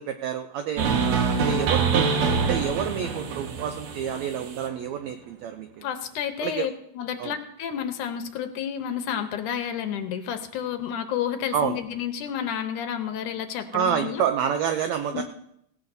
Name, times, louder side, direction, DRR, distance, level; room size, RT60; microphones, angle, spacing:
voice 1, 0.0-2.1 2.5-5.9 6.4-6.7 7.2-7.3 11.5-11.8 13.7-15.2, right 8 dB, 80° right, 7 dB, 1.5 m, -28 dB
sound 1, 0.8-4.7, right 5 dB, 65° right, 2.2 m, -25 dB
voice 2, 1.3-1.7 5.8-14.2 15.1-15.2, left 9 dB, 75° left, 8 dB, 2.2 m, -31 dB
17.0 x 17.0 x 2.7 m, 0.76 s
omnidirectional pair, 3.8 m